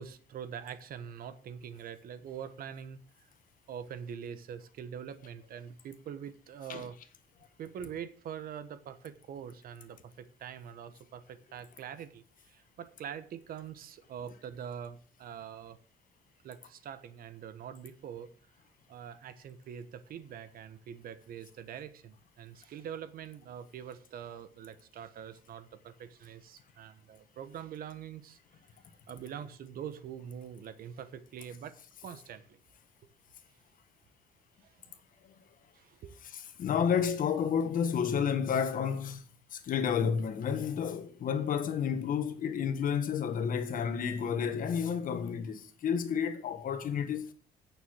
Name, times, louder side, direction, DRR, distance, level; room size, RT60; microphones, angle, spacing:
voice 1, 0.0-3.0 3.7-7.0 7.6-15.8 16.4-18.3 18.9-28.4 29.1-31.7 32.0-32.6 34.6-34.7 35.7-36.1, right 8 dB, 60° right, 1.1 m, -44 dB
voice 2, 36.2-39.2 39.5-47.3, left 7 dB, 55° left, 1.6 m, -31 dB
9.3 x 6.8 x 6.3 m
cardioid pair, 110°, 17 cm